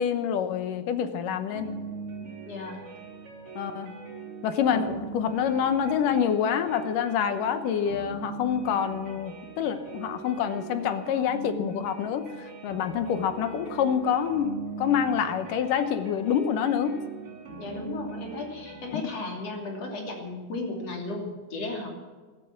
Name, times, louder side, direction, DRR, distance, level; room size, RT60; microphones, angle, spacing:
voice 1, 0.0-1.7 3.6-4.0 4.4-14.5 14.8-17.0 18.9-19.0, left 8 dB, 75° left, 9 dB, 2.5 m, -27 dB
sound 1, 1.5-18.9, right 4 dB, 40° right, 3.8 m, -41 dB
voice 2, 2.5-2.9 4.7-5.0 17.6-21.9, left 2 dB, 45° left, 1 dB, 3.8 m, -35 dB
15.0 x 14.5 x 5.9 m, 1.4 s
omnidirectional pair, 4.1 m